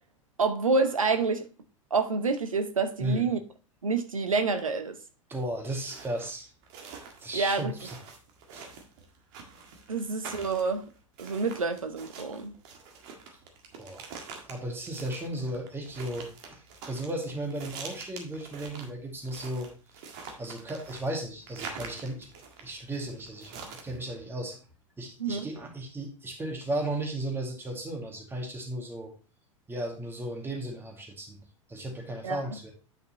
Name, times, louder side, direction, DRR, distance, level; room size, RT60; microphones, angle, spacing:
voice 1, 0.4-1.4 1.9-3.4 3.8-5.0 7.3-7.7 9.9-10.8 11.2-12.5 25.2-25.5 32.2-32.4, right 4 dB, 80° right, 1.0 m, -27 dB
voice 2, 5.3-6.5 7.2-8.0 8.5-8.6 13.8-14.1 14.4-16.6 16.9-19.7 20.3-22.3 22.6-24.6 25.0-29.1 29.7-31.4 31.7-32.7, right 1 dB, 15° right, 2.1 m, -35 dB
sound 1, 5.4-24.0, right 5 dB, 50° right, 1.8 m, -45 dB
9.6 x 5.3 x 3.0 m
figure-of-eight pair, 90°, 17 cm